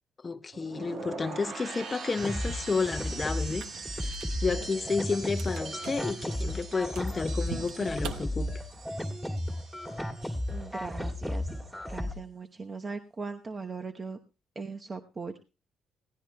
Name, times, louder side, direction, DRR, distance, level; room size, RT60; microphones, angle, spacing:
voice 1, 0.2-4.2 4.4-8.5, left 4 dB, 30° left, 0.6 m, -31 dB
sound 1, 0.5-10.6 10.9-11.4, right 4 dB, 60° right, 1.6 m, -43 dB
sound 2, 2.2-12.2, left 1 dB, 5° right, 2.4 m, -34 dB
sound 3, 3.4-9.0, right 6 dB, 90° right, 1.0 m, -45 dB
voice 2, 10.5-14.2 14.5-15.4, right 4 dB, 30° right, 0.9 m, -39 dB
21.5 x 17.0 x 2.2 m
cardioid pair, 90°, 0 cm